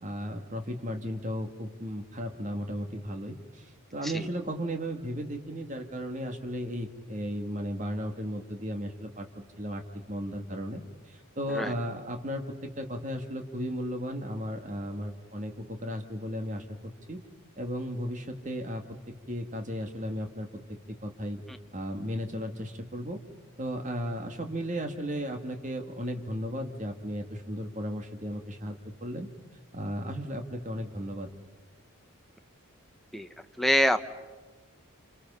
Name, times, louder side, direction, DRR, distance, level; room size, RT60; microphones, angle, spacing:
voice 1, 0.0-9.3 9.6-9.8 10.1-10.8 11.1-17.2 17.6-18.8 19.3-20.5 20.9-21.4 21.7-23.2 23.6-29.3 29.7-31.3, equal, 35° right, 5 dB, 2.0 m, -35 dB
voice 2, 33.6-34.1, equal, ahead, 7 dB, 0.9 m, -25 dB
29.0 x 28.5 x 5.6 m, 1.4 s
head